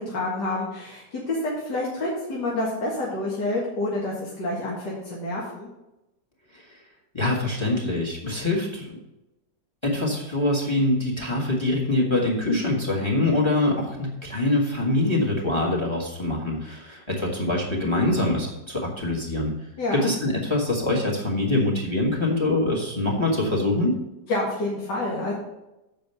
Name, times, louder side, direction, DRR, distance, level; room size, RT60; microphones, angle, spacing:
voice 1, 0.0-5.7 19.8-20.1 24.3-25.3, left 2 dB, 80° left, -5 dB, 2.4 m, -28 dB
voice 2, 7.1-8.9 9.8-19.5 19.9-24.0, left 2 dB, 15° left, 0 dB, 1.8 m, -24 dB
7.5 x 5.3 x 6.7 m, 0.96 s
omnidirectional pair, 1.8 m